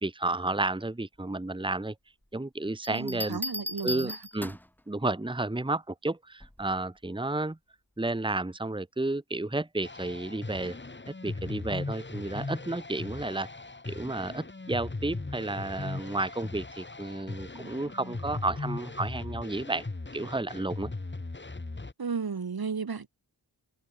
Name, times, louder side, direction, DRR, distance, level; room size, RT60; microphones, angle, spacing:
voice 1, 0.0-1.9 2.3-3.4 3.8-4.6 4.9-7.6 8.0-10.8 11.2-13.5 13.9-19.9 20.1-20.9, right 2 dB, 10° right, 1.4 m, -32 dB
Bell, 2.8-4.8 6.4-6.7, equal, 5° left, 1.5 m, -37 dB
voice 2, 2.9-4.2 22.0-23.1, right 5 dB, 65° right, 2.2 m, -34 dB
sound 1, 9.8-21.9, left 3 dB, 25° left, 2.1 m, -38 dB
wide cardioid pair, 90°, 40 cm